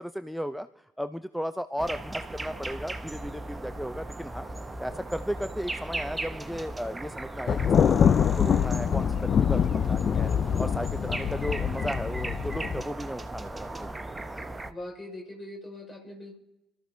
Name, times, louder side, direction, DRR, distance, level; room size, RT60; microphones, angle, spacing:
voice 1, 0.0-4.5 4.8-10.3 10.6-13.7, equal, ahead, 11 dB, 0.7 m, -35 dB
sound 1, 1.8-14.7, right 2 dB, 20° right, 1.1 m, -37 dB
Thunder, 7.5-12.8, left 8 dB, 50° left, 0.4 m, -24 dB
voice 2, 14.7-16.4, left 1 dB, 30° left, 1 dB, 5.6 m, -41 dB
28.0 x 13.5 x 2.8 m, 0.98 s
figure-of-eight pair, 40°, 0 cm